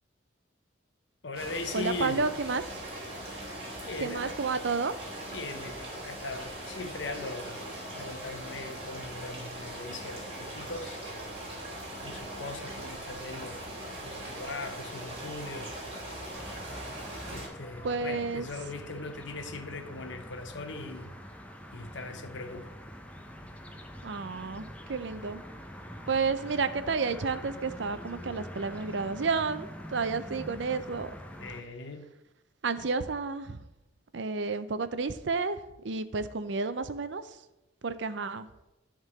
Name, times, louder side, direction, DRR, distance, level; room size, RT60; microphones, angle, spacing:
voice 1, 1.2-2.3 3.8-4.4 5.3-7.6 7.9-11.0 12.0-13.7 14.0-15.8 17.3-21.2 21.7-22.8 31.4-32.1, left 3 dB, 70° left, 0.9 m, -40 dB
sound 1, 1.3-17.5, right 1 dB, 30° right, 2.5 m, -40 dB
voice 2, 1.7-2.8 4.0-4.9 17.8-18.5 24.0-25.4 26.1-31.1 32.6-33.6 34.1-37.2 37.8-38.5, right 4 dB, 70° right, 0.6 m, -31 dB
sound 2, 16.3-31.6, equal, 5° left, 0.6 m, -45 dB
11.0 x 3.7 x 6.6 m
head